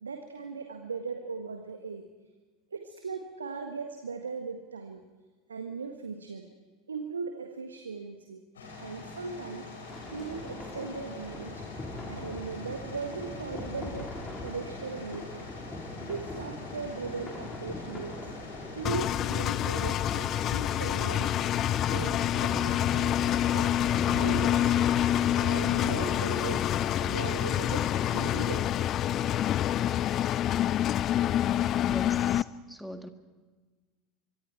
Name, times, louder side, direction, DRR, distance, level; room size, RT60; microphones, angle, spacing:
voice 1, 0.0-2.1 2.7-5.0 5.5-6.5 6.9-8.4 8.8-9.7 10.1-11.7 12.1-14.1 14.4-15.5 16.0-18.3 18.7-21.3 21.9-23.8 24.1-24.8 25.4-26.7 27.0-28.9, right 5 dB, 80° right, 6 dB, 1.5 m, -38 dB
sound 1, 8.5-28.5, left 3 dB, 70° left, 6.5 m, -44 dB
sound 2, 9.9-29.3, left 2 dB, 15° left, 4.5 m, -41 dB
Engine, 18.8-32.4, left 11 dB, 40° left, 0.5 m, -27 dB
voice 2, 31.9-33.1, equal, ahead, 8 dB, 1.6 m, -41 dB
24.5 x 23.5 x 4.7 m, 1.3 s
figure-of-eight pair, 80°, 0 cm